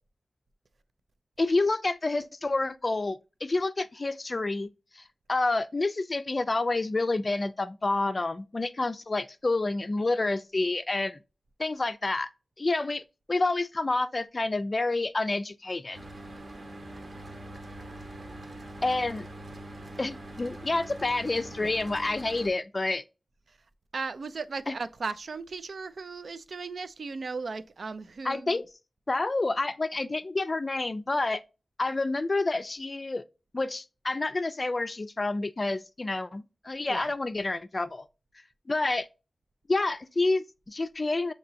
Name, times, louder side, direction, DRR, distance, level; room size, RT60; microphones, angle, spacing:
voice 1, 1.4-4.7 5.0-5.1 5.3-11.2 11.6-12.3 12.6-13.0 13.3-16.0 18.8-19.3 20.0-23.0 24.7-24.8 28.2-28.6 29.1-31.4 31.8-33.2 33.5-38.1 38.7-39.1 39.7-41.3, left 2 dB, 35° left, 0.4 m, -28 dB
Mechanical fan, 15.9-22.5, right 1 dB, 45° right, 0.9 m, -43 dB
voice 2, 23.9-28.7 36.9-37.1, right 4 dB, 65° right, 0.4 m, -36 dB
6.7 x 2.9 x 2.6 m
wide cardioid pair, 120°, 0 cm